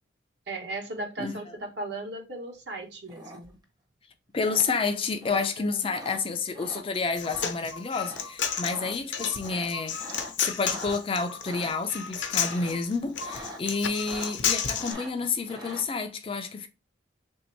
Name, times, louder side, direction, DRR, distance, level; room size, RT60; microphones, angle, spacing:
voice 1, 0.5-3.6 5.6-5.9, right 2 dB, 60° right, 1.0 m, -37 dB
sound 1, 3.1-3.6 4.4-4.6 5.2-5.5 5.9-6.2 6.5-6.8 7.2-7.5 7.9-8.2 8.5-8.9 9.4-11.0 11.4-11.7 12.4-12.9 13.2-13.6 13.9-14.5 14.8-15.8, equal, 20° right, 0.8 m, -42 dB
voice 2, 4.3-10.0 10.4-16.7, left 4 dB, 30° left, 0.4 m, -29 dB
Human voice, 6.9-14.9, left 7 dB, 70° left, 0.7 m, -32 dB
3.4 x 2.7 x 4.4 m
head